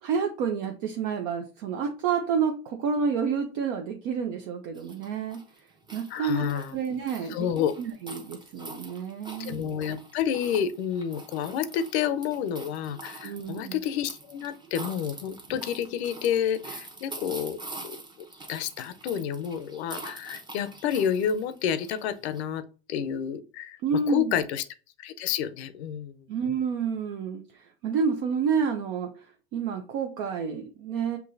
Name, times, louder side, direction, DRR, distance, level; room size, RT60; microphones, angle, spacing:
voice 1, 0.0-5.7 5.9-7.5 7.8-9.6 13.2-13.8 23.8-24.4 26.3-31.2, right 6 dB, 50° right, 3 dB, 0.7 m, -29 dB
sound 1, 4.7-22.4, right 2 dB, 15° right, 0.9 m, -45 dB
voice 2, 6.1-6.8 7.3-7.7 9.4-17.6 17.8-18.0 18.5-22.6 22.9-24.6 25.0-26.2, left 8 dB, 70° left, 12 dB, 0.6 m, -29 dB
6.0 x 2.8 x 2.6 m, 0.36 s
hypercardioid pair, 120°, 34 cm